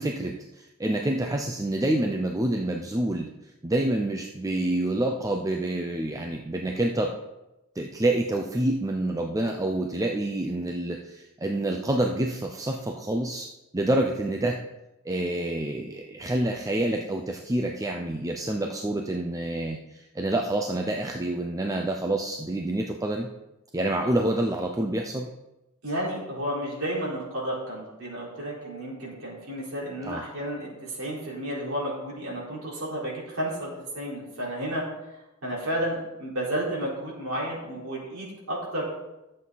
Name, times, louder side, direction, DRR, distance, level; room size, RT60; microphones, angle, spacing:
voice 1, 0.0-3.3 3.6-7.2 7.8-14.6 15.0-23.3 23.7-25.3 30.0-30.2, right 1 dB, 15° right, 2 dB, 0.6 m, -27 dB
voice 2, 25.8-34.8 35.4-38.8, right 1 dB, 75° right, -5 dB, 4.4 m, -32 dB
13.0 x 7.5 x 4.1 m, 0.96 s
head